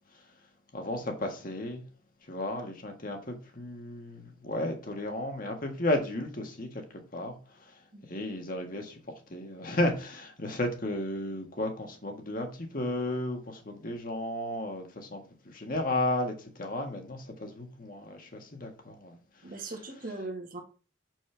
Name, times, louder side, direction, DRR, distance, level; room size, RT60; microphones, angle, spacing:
voice 1, 0.7-1.8 2.3-6.8 7.1-7.3 8.1-9.0 9.3-19.2, left 1 dB, 45° left, 1.6 m, -33 dB
voice 2, 19.4-20.6, right 2 dB, 45° right, 1.5 m, -39 dB
6.7 x 6.3 x 3.4 m
head